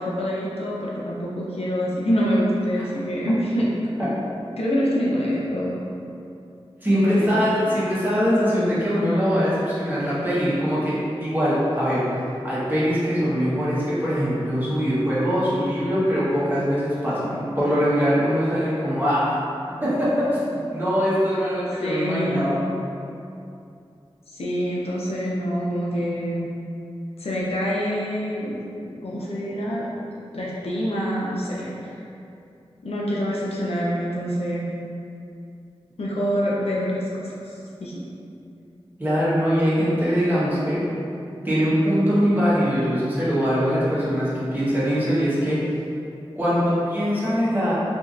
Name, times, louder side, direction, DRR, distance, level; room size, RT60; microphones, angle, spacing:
voice 1, 0.0-3.7 4.6-5.7 6.9-7.4 21.8-22.5 24.3-26.5 27.2-28.6 28.8-29.9 30.3-32.0 32.8-34.6 36.0-37.5 37.8-37.9, equal, 75° left, -5 dB, 0.5 m, -26 dB
voice 2, 6.8-19.4 19.8-22.7 39.0-40.8 41.4-45.6 46.4-47.7, equal, 20° right, -11 dB, 1.0 m, -22 dB
2.9 x 2.6 x 2.5 m, 2.6 s
wide cardioid pair, 55°, 10 cm